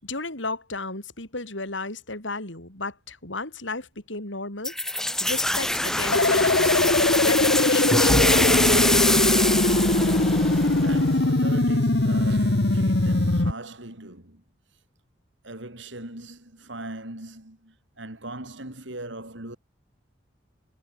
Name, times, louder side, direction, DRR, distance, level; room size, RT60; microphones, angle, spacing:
voice 1, 0.0-4.8 5.2-6.6 7.2-9.3, left 3 dB, 85° left, 7.3 m, -34 dB
Domestic sounds home sounds, 1.7-1.9 2.2-13.4, right 11 dB, 60° right, 6.5 m, -51 dB
sound 1, 4.6-11.3, left 1 dB, 5° left, 0.4 m, -24 dB
sound 2, 6.1-13.5, left 2 dB, 65° left, 1.2 m, -21 dB
voice 2, 10.5-14.4 15.4-19.6, right 2 dB, 80° right, 5.8 m, -40 dB
head